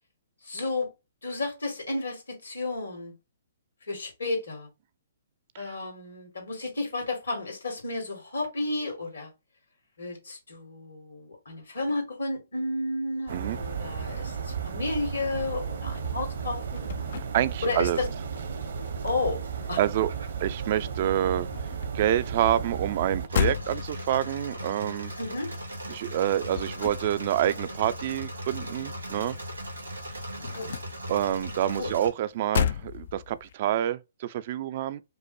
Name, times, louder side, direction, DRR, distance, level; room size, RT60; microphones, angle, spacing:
voice 1, 0.4-0.9 1.2-3.1 3.9-4.7 5.6-9.3 10.0-16.9 17.6-18.1 19.0-19.8 25.2-25.5 30.4-30.7 31.8-31.9, left 2 dB, 75° left, 2.0 m, -32 dB
sound 1, 13.3-23.3, right 6 dB, 65° right, 0.8 m, -34 dB
sound 2, 16.4-18.4 18.7-20.6 20.9-29.6 29.8-33.5, left 9 dB, 55° left, 0.3 m, -35 dB
voice 2, 17.3-18.0 19.8-20.1 20.4-21.5 21.9-25.1 25.9-29.4 31.1-35.0, right 11 dB, 45° right, 0.4 m, -27 dB
Engine / Mechanisms, 23.3-32.1, equal, 85° right, 1.6 m, -38 dB
5.2 x 2.0 x 3.2 m
figure-of-eight pair, 125°, 0 cm